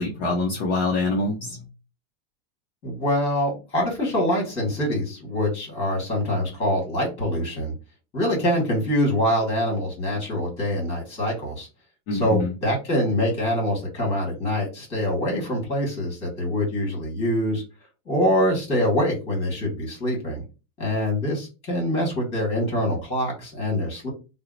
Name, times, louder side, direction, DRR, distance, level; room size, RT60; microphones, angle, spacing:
voice 1, 0.0-1.6 12.1-12.5, left 2 dB, 35° left, 0.6 m, -25 dB
voice 2, 2.8-7.7 8.1-11.7 12.1-17.6 18.0-20.4 20.8-24.1, left 1 dB, 20° left, 1.5 m, -24 dB
2.8 x 2.0 x 3.8 m
supercardioid pair, 165°, 32 cm